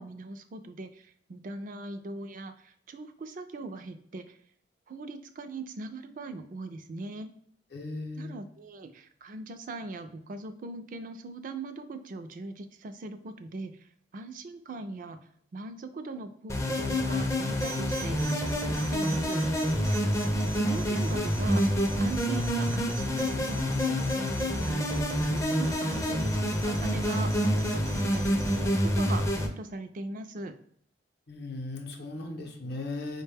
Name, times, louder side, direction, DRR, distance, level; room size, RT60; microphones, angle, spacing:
voice 1, 0.0-4.4 4.9-7.3 8.2-15.2 15.5-19.4 20.6-21.6 22.0-30.5, right 2 dB, 45° right, 8 dB, 0.4 m, -40 dB
voice 2, 7.7-8.4 31.3-33.2, left 2 dB, 60° left, 2 dB, 0.6 m, -37 dB
sound 1, 16.5-29.5, equal, 15° left, 0.4 m, -27 dB
sound 2, 17.6-28.6, right 7 dB, 85° right, 0.7 m, -44 dB
4.7 x 2.2 x 3.3 m, 0.67 s
head